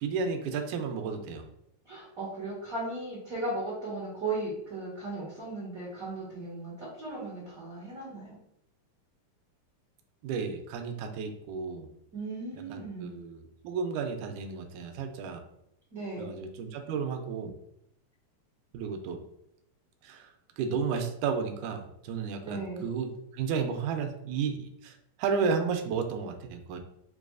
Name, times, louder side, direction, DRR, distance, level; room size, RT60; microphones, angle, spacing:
voice 1, 0.0-1.5 10.2-11.9 12.7-15.4 16.2-17.5 18.7-19.2 20.0-20.3 20.6-26.8, right 5 dB, 85° right, 4 dB, 2.0 m, -33 dB
voice 2, 1.8-8.4 12.1-13.1 15.9-16.3 22.4-22.8, right 2 dB, 45° right, -7 dB, 1.2 m, -36 dB
6.8 x 2.4 x 2.3 m, 0.77 s
omnidirectional pair, 3.5 m